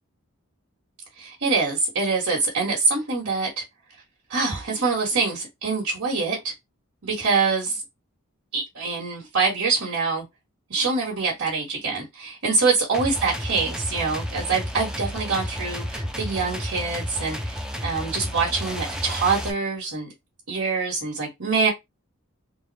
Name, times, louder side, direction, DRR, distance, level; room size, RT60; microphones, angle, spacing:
voice 1, 1.2-3.6 4.3-6.4 7.0-7.8 8.5-10.2 10.7-20.1 20.5-21.7, right 4 dB, 85° right, 1.5 m, -25 dB
sound 1, 12.9-19.5, equal, 5° right, 0.4 m, -32 dB
3.6 x 2.2 x 4.0 m
head